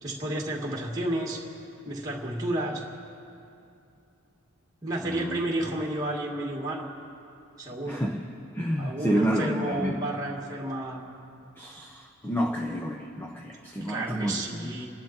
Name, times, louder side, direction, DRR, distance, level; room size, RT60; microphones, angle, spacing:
voice 1, 0.0-1.4 1.9-2.8 4.8-6.9 7.6-8.0 8.8-11.0 13.9-14.9, right 1 dB, 15° right, -5 dB, 2.1 m, -31 dB
voice 2, 5.0-5.4 7.9-8.2 8.5-9.9 11.6-14.7, equal, 10° left, 0 dB, 0.8 m, -30 dB
28.0 x 11.5 x 4.4 m, 2.6 s
head